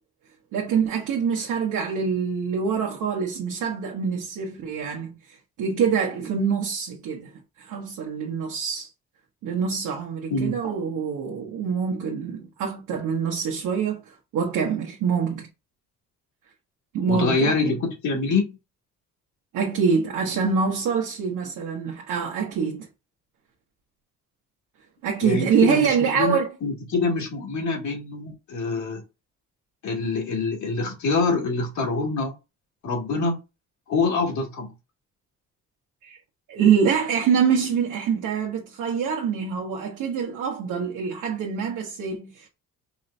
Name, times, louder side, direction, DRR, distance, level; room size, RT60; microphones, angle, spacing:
voice 1, 0.5-5.2 5.6-8.9 9.4-15.5 16.9-17.7 19.5-22.9 25.0-26.5 36.0-36.2 36.5-42.5, right 6 dB, 85° right, 1.2 m, -25 dB
voice 2, 17.1-18.6 25.2-29.0 29.8-32.3 32.8-33.4 33.9-34.7, left 3 dB, 70° left, 2.3 m, -25 dB
5.5 x 2.6 x 3.2 m
cardioid pair, 90°, 30 cm